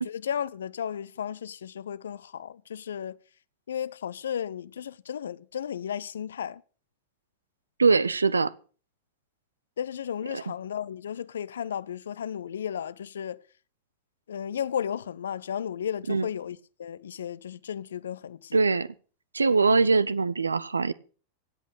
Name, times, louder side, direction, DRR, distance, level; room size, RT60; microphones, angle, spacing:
voice 1, 0.1-3.2 3.7-6.6 9.8-13.4 14.3-18.6, left 8 dB, 65° left, 0.6 m, -34 dB
voice 2, 7.8-8.5 10.3-10.4 16.1-16.3 18.5-18.9 19.3-20.9, right 4 dB, 75° right, 0.6 m, -22 dB
16.0 x 8.3 x 6.5 m
figure-of-eight pair, 90°, 0 cm